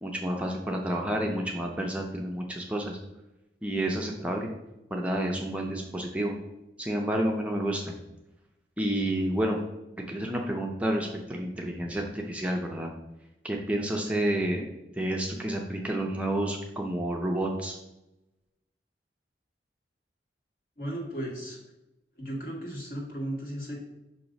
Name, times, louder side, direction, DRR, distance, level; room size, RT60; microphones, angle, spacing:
voice 1, 0.0-3.0 3.6-4.5 4.9-6.4 6.8-7.9 8.8-9.6 10.1-12.9 13.4-14.6 15.0-17.7, right 1 dB, 5° right, 0 dB, 0.5 m, -30 dB
voice 2, 20.8-21.6 22.2-23.8, right 1 dB, 55° left, -2 dB, 1.7 m, -35 dB
6.2 x 2.9 x 5.2 m, 0.94 s
head